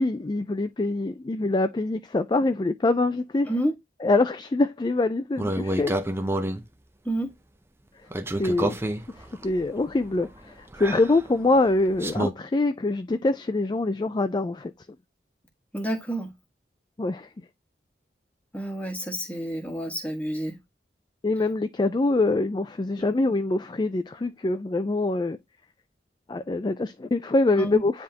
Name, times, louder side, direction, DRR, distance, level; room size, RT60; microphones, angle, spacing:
voice 1, 0.0-3.5 4.0-5.9 8.4-8.8 9.4-14.7 17.0-17.3 21.2-25.4 26.3-28.0, left 2 dB, 25° left, 0.4 m, -24 dB
sound 1, 5.4-6.6 8.1-12.3, right 1 dB, 15° right, 0.6 m, -29 dB
voice 2, 15.7-16.3 18.5-20.6 27.6-27.8, right 1 dB, 10° left, 1.5 m, -29 dB
9.6 x 3.5 x 2.8 m
head